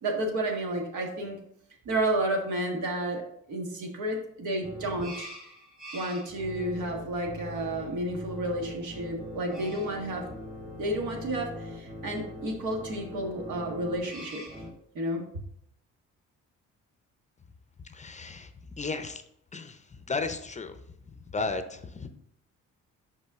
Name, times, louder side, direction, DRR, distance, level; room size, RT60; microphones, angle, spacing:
voice 1, 0.0-1.4 1.8-3.2 3.5-5.3 5.9-10.3 10.8-14.4 14.9-15.3, right 1 dB, 80° right, 1 dB, 1.5 m, -31 dB
sound 1, 4.6-14.7, left 1 dB, 25° right, 1.9 m, -42 dB
voice 2, 17.8-19.2 19.5-22.1, left 3 dB, 25° left, 9 dB, 0.5 m, -35 dB
5.6 x 5.4 x 3.5 m, 0.72 s
cardioid pair, 90°, 30 cm